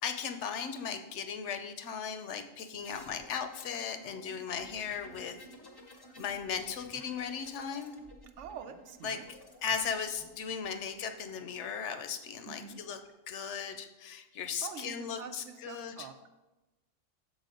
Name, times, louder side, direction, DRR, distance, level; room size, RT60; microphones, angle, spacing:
voice 1, 0.0-5.4 6.2-7.9 9.0-9.2 9.6-13.0 13.3-16.1, left 7 dB, 70° left, 8 dB, 0.9 m, -37 dB
sound 1, 2.8-11.4 12.5-13.1, equal, 30° left, 0.5 m, -55 dB
voice 2, 8.4-9.3 12.5-12.8 14.6-16.1, right 7 dB, 75° right, 8 dB, 0.9 m, -45 dB
6.8 x 4.1 x 5.1 m, 1.0 s
omnidirectional pair, 1.3 m